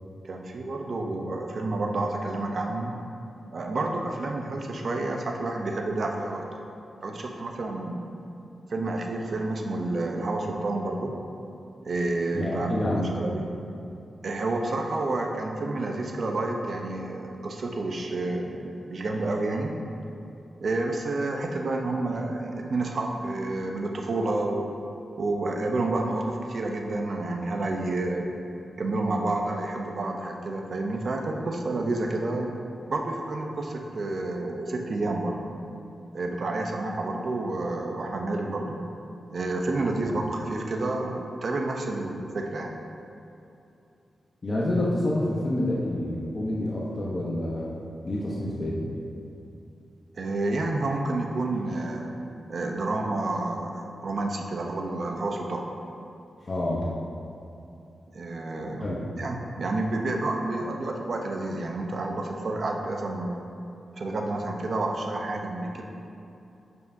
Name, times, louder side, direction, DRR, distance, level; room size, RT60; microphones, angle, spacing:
voice 1, 0.2-3.0 3.5-6.6 7.0-8.2 8.7-11.1 11.8-13.5 14.2-19.7 20.6-24.7 25.2-28.3 28.8-32.5 32.9-35.5 36.1-38.8 39.3-42.7 50.2-52.1 52.5-55.6 58.1-63.3 64.0-65.8, right 2 dB, 55° right, 2 dB, 0.7 m, -29 dB
voice 2, 12.3-13.1 40.0-40.1 44.4-47.7 48.0-48.9 56.5-56.9 58.8-59.1, left 1 dB, 35° left, -6 dB, 0.9 m, -28 dB
9.3 x 5.5 x 2.7 m, 2.8 s
wide cardioid pair, 110°, 0 cm